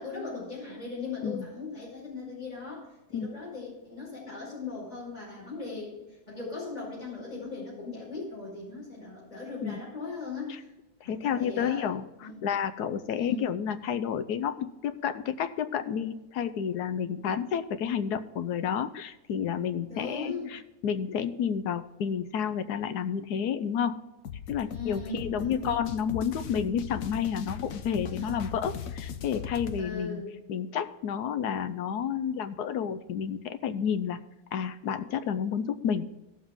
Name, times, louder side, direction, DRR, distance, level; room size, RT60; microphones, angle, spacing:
voice 1, 0.0-5.9 6.3-10.7 11.0-11.9 12.2-12.5 13.2-13.5 19.9-20.5 24.6-25.8 29.8-30.3, left 3 dB, 25° left, -6 dB, 4.9 m, -38 dB
voice 2, 11.0-24.0 24.5-30.2 30.5-34.2 34.5-36.1, left 8 dB, 90° left, 11 dB, 1.2 m, -30 dB
sound 1, 24.2-29.9, left 8 dB, 65° left, 1.1 m, -39 dB
16.5 x 7.1 x 3.7 m, 0.99 s
omnidirectional pair, 1.7 m